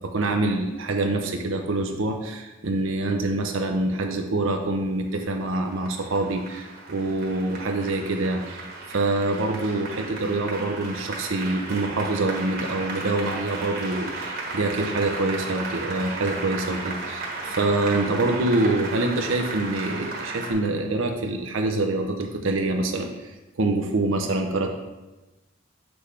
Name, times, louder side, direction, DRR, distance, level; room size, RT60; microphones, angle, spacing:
voice 1, 0.0-24.7, right 2 dB, 75° right, 3 dB, 0.6 m, -25 dB
Applause, 5.2-20.5, right 3 dB, 50° right, 1.4 m, -35 dB
6.7 x 6.1 x 3.2 m, 1.1 s
head